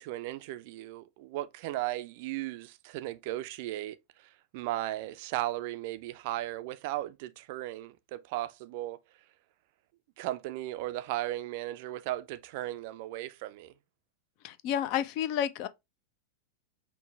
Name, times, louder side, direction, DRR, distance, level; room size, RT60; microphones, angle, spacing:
voice 1, 0.0-4.0 4.5-9.0 10.2-13.7, right 15 dB, 50° right, 0.3 m, -36 dB
voice 2, 14.4-15.7, left 10 dB, 45° left, 0.4 m, -30 dB
5.4 x 2.1 x 3.3 m
figure-of-eight pair, 90°, 0 cm